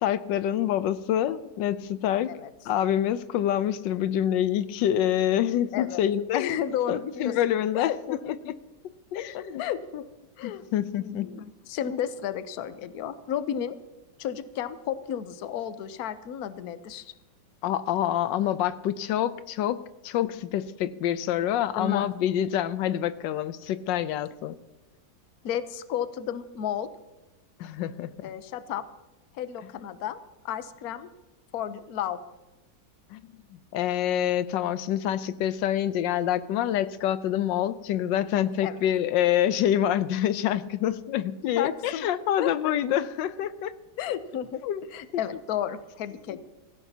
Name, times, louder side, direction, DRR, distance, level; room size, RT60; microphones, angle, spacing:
voice 1, 0.0-2.4 2.7-6.4 6.9-7.9 8.4-8.6 9.1-9.6 10.4-11.3 17.6-19.8 20.0-24.6 27.6-28.1 33.1-33.2 33.5-43.7 44.6-44.8 45.1-45.2, left 11 dB, 90° left, 14 dB, 1.3 m, -26 dB
voice 2, 6.3-7.3 7.7-8.3 9.1-10.1 10.4-10.6 11.0-13.8 14.2-17.1 21.8-22.1 25.4-26.9 28.2-28.8 29.3-30.2 30.4-31.1 31.5-32.2 38.6-38.8 41.6-42.1 42.4-42.7 44.0-44.6 44.9-46.4, left 9 dB, 65° left, 12 dB, 1.1 m, -32 dB
17.5 x 16.0 x 2.8 m, 1.1 s
omnidirectional pair, 1.9 m